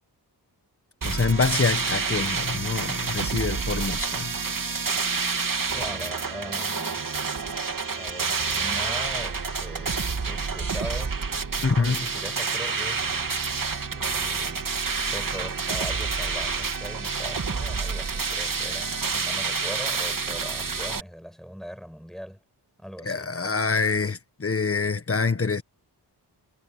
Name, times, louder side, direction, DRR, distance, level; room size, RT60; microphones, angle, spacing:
voice 1, 1.0-4.4 11.6-12.0 23.0-25.6, left 4 dB, 30° left, 1.5 m, -25 dB
sound 1, 1.0-21.0, right 5 dB, 50° right, 2.8 m, -28 dB
voice 2, 5.7-7.1 7.9-11.2 11.6-13.4 13.9-14.7 15.1-22.4 22.8-23.3, equal, ahead, 5.9 m, -40 dB
wide cardioid pair, 125°, 42 cm